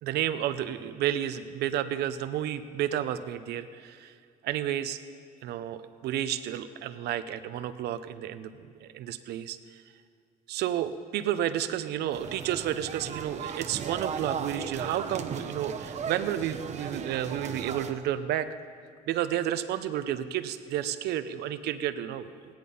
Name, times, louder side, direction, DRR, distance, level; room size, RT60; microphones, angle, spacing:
voice 1, 0.0-4.1 4.4-5.0 5.4-9.8 10.5-18.5 19.1-22.3, right 11 dB, 75° right, 11 dB, 0.7 m, -31 dB
sound 1, 12.1-17.9, right 6 dB, 45° right, 0.9 m, -36 dB
16.0 x 10.5 x 5.4 m, 2.1 s
cardioid pair, 110°, 17 cm